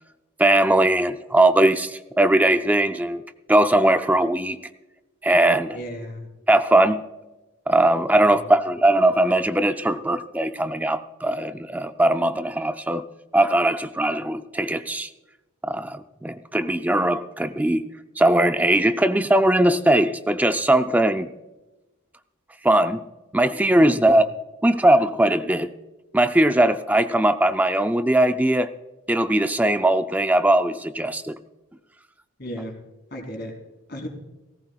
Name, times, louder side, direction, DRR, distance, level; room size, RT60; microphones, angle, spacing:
voice 1, 0.4-3.2 3.5-4.6 5.2-5.8 6.5-7.0 7.7-13.0 13.3-15.1 15.6-17.8 18.2-21.3 22.6-23.0 23.3-24.3 24.6-25.7 26.1-28.7 29.1-31.4, right 1 dB, 10° right, 9 dB, 0.4 m, -20 dB
voice 2, 5.7-6.3 8.1-8.4 23.8-24.1 32.4-32.8 33.1-33.5 33.9-34.1, equal, 50° left, 2 dB, 3.5 m, -35 dB
18.5 x 17.0 x 2.3 m, 1.1 s
head